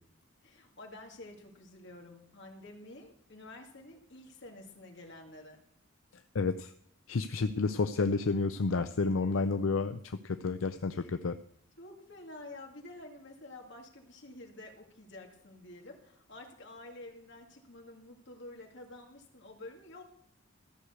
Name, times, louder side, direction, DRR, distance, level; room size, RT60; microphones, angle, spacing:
voice 1, 0.4-5.6 9.0-9.4 9.7-9.8 10.9-11.2 11.8-20.0, left 2 dB, 65° left, 2 dB, 2.4 m, -50 dB
voice 2, 6.3-6.7 7.1-11.4, left 4 dB, 85° left, 10 dB, 0.5 m, -30 dB
14.0 x 6.5 x 8.1 m, 0.68 s
head